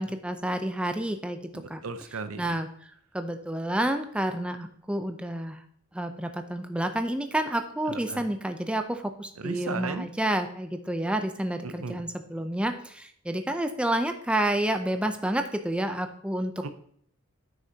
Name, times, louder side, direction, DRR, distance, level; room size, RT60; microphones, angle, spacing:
voice 1, 0.0-1.4 1.7-1.8 2.4-2.7 3.1-5.6 5.9-16.6, right 1 dB, 5° right, 7 dB, 0.5 m, -29 dB
voice 2, 1.5-2.5 7.9-8.2 9.4-10.1 11.6-12.0 16.6-16.7, right 4 dB, 70° right, 11 dB, 0.7 m, -36 dB
9.3 x 6.4 x 2.8 m, 0.65 s
head